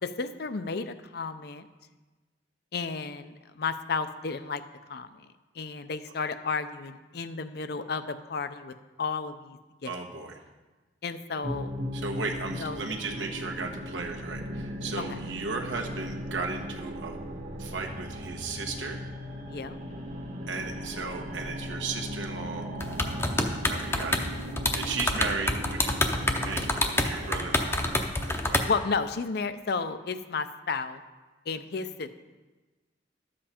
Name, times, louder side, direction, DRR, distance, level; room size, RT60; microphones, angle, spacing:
voice 1, 0.0-1.7 2.7-4.6 4.9-5.3 5.5-9.9 11.0-11.7 12.5-12.8 19.5-19.8 23.3-23.6 28.6-31.0 31.5-32.1, left 4 dB, 60° left, 10 dB, 0.6 m, -33 dB
voice 2, 9.8-10.4 11.9-17.2 17.6-19.0 20.5-22.7 23.7-24.2 24.7-26.0 26.2-26.8 27.0-27.8 28.2-28.7, right 4 dB, 85° right, 2 dB, 1.3 m, -35 dB
sound 1, 11.4-28.9, equal, 40° right, 1.2 m, -38 dB
sound 2, 22.8-24.3 24.6-28.6, left 2 dB, 15° left, 0.7 m, -27 dB
12.0 x 7.6 x 4.4 m, 1.2 s
head